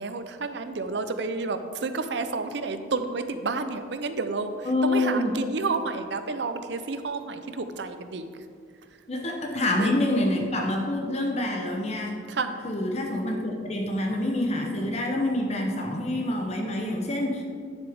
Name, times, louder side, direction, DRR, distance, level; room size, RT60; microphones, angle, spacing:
voice 1, 0.0-8.3 9.8-9.9 12.3-12.6, right 3 dB, 60° right, 9 dB, 0.6 m, -30 dB
voice 2, 4.6-5.3 9.1-12.1 12.6-17.4, left 1 dB, 35° left, 1 dB, 0.8 m, -27 dB
9.9 x 7.1 x 3.5 m, 2.2 s
head